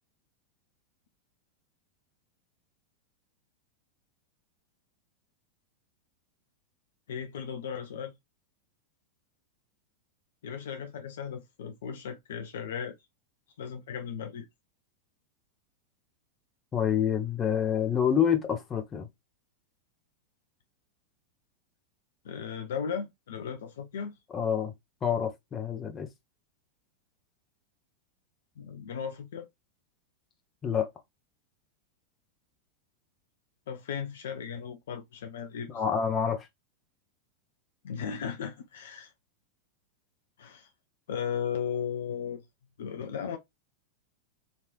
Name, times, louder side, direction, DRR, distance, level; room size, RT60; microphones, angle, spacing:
voice 1, 7.1-8.1 10.4-12.9 13.6-14.5 22.2-24.1 28.6-29.5 33.7-35.8 37.8-39.1 40.4-40.7 41.1-42.4 42.8-43.4, left 7 dB, 60° left, 0.5 m, -36 dB
voice 2, 16.7-19.1 24.3-24.7 25.0-26.1 30.6-30.9 35.7-36.5, left 8 dB, 25° left, 0.8 m, -27 dB
3.1 x 2.8 x 2.3 m
figure-of-eight pair, 90°, 0 cm